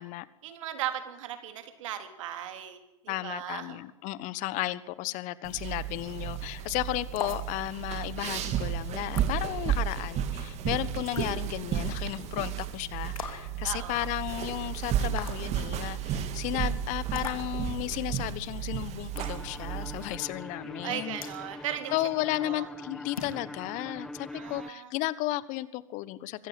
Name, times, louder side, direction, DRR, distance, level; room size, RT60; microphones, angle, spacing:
voice 1, 0.4-3.8 13.6-14.1 20.8-22.0 22.4-22.7 24.3-24.9, right 11 dB, 65° right, 7 dB, 3.6 m, -37 dB
voice 2, 3.1-21.2 21.9-26.5, left 17 dB, 45° left, 18 dB, 1.3 m, -34 dB
sound 1, 5.4-20.2, right 9 dB, 40° right, 2.7 m, -33 dB
sound 2, 7.2-7.5 9.2-9.3 11.2-11.4 13.2-13.5 15.2-15.4 17.2-17.4 19.2-19.4 21.2-21.4 23.2-23.4, left 5 dB, 85° left, 3.1 m, -37 dB
sound 3, 19.1-24.7, left 1 dB, 5° left, 1.0 m, -43 dB
24.0 x 15.0 x 9.1 m, 0.95 s
hypercardioid pair, 100°, 17 cm